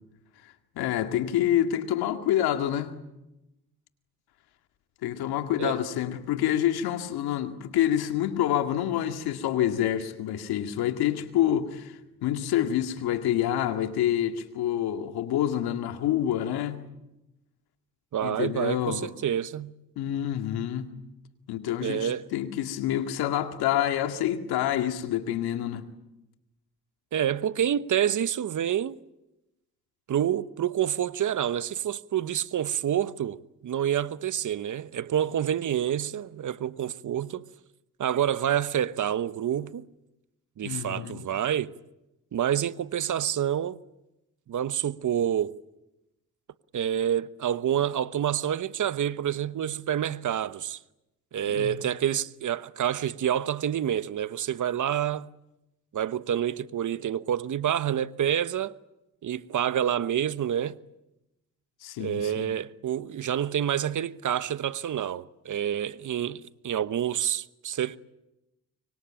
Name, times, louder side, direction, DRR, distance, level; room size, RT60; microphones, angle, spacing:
voice 1, 0.8-2.9 5.0-16.8 18.2-19.1 20.0-20.9 21.5-25.8 40.6-41.3 51.4-51.8 61.8-62.5, left 11 dB, 85° left, 2.2 m, -27 dB
voice 2, 18.1-19.7 21.8-22.2 27.1-29.0 30.1-37.5 38.0-39.9 40.6-41.7 42.3-43.8 44.5-45.5 46.7-50.8 51.3-55.3 55.9-58.7 59.2-60.8 62.0-68.0, right 10 dB, 55° right, 1.0 m, -28 dB
24.5 x 24.0 x 8.9 m
supercardioid pair, 65°, 37 cm